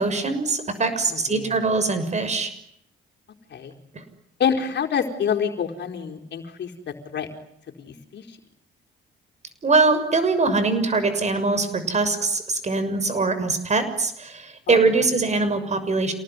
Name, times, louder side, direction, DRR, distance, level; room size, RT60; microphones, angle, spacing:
voice 1, 0.0-2.5 9.6-16.1, right 3 dB, 35° right, 10 dB, 6.6 m, -22 dB
voice 2, 1.1-1.6 3.5-3.7 4.4-7.3 7.8-8.4 14.7-15.3, left 7 dB, 60° left, 4 dB, 4.4 m, -28 dB
28.5 x 19.0 x 9.8 m, 0.73 s
cardioid pair, 90°, 20 cm